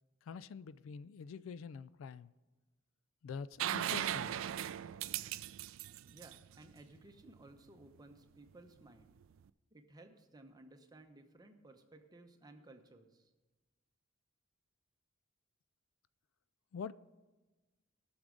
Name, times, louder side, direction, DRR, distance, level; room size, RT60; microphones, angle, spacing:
voice 1, 0.2-2.3 3.2-4.3 16.7-16.9, left 6 dB, 70° left, 0.3 m, -46 dB
sound 1, 3.6-7.3 9.2-9.3, right 11 dB, 65° right, 0.3 m, -38 dB
voice 2, 6.0-9.1 9.7-13.3, right 2 dB, 20° right, 0.8 m, -58 dB
18.5 x 6.3 x 3.8 m
head